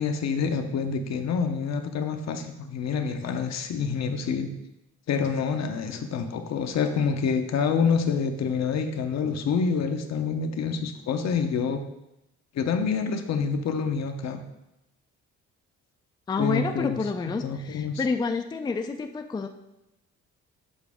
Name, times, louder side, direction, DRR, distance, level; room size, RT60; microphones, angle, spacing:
voice 1, 0.0-4.5 5.1-11.8 12.5-14.4 16.4-17.0 17.4-18.0, left 6 dB, 60° left, 7 dB, 0.8 m, -27 dB
voice 2, 16.3-19.5, left 4 dB, 15° left, 6 dB, 0.4 m, -29 dB
7.3 x 4.1 x 3.5 m, 0.89 s
cardioid pair, 90°, 30 cm